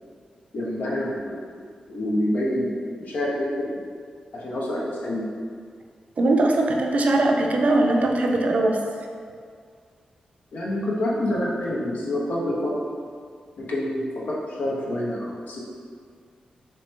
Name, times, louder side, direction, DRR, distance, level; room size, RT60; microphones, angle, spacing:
voice 1, 0.5-1.4 1.9-3.7 4.4-5.3 10.5-12.7 13.6-15.6, left 1 dB, 75° left, -5 dB, 0.8 m, -27 dB
voice 2, 6.2-8.8, right 2 dB, 60° right, 1 dB, 0.4 m, -20 dB
3.2 x 3.1 x 3.1 m, 2.1 s
cardioid pair, 50°, 3 cm